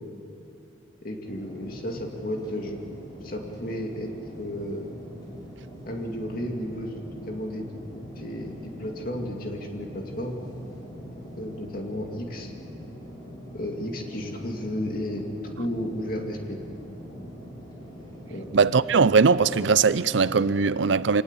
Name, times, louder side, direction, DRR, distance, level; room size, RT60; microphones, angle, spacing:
voice 1, 1.0-2.8 3.2-4.1 4.4-4.9 5.9-6.9 7.3-7.7 8.2-10.4 11.4-12.5 13.5-15.2 15.6-16.6 18.3-18.5, equal, 50° left, 2.4 m, -33 dB
sound 1, 1.2-20.5, equal, 20° left, 5.9 m, -43 dB
voice 2, 18.5-21.2, right 5 dB, 75° right, 0.6 m, -20 dB
25.0 x 19.0 x 8.2 m
head